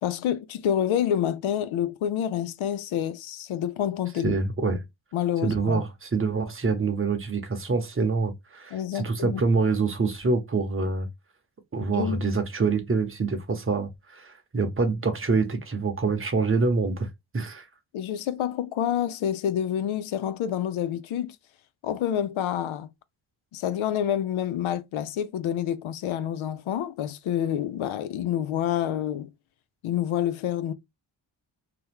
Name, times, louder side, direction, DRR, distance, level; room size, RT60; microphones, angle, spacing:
voice 1, 0.0-4.4 5.1-5.8 8.7-9.4 11.9-12.2 17.9-21.4 21.8-22.9 23.5-29.3 29.8-30.7, left 10 dB, 80° left, 0.5 m, -28 dB
voice 2, 4.2-4.8 5.4-11.1 11.7-17.1 17.3-17.7, right 4 dB, 25° right, 0.8 m, -26 dB
2.9 x 2.3 x 3.4 m
cardioid pair, 95°, 48 cm